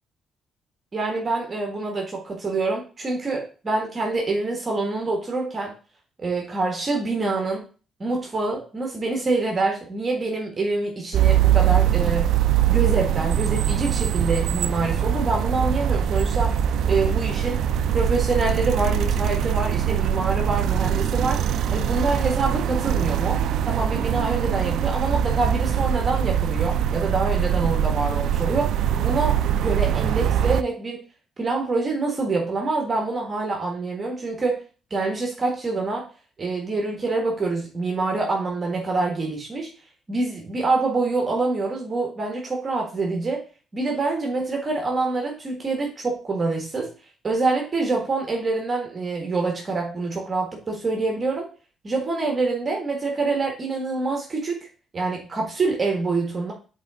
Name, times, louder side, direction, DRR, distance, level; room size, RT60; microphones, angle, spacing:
voice 1, 0.9-5.7 6.2-7.7 8.0-12.3 12.7-16.5 16.8-17.6 17.9-21.4 21.7-31.0 31.4-34.6 34.9-36.1 36.4-39.7 40.1-43.4 43.7-46.9 47.2-51.5 51.8-54.7 54.9-56.5, right 3 dB, 35° right, 1 dB, 1.5 m, -26 dB
sound 1, 11.1-30.6, right 9 dB, 75° right, 0.3 m, -22 dB
7.5 x 4.1 x 3.6 m, 0.38 s
cardioid pair, 90°, 0 cm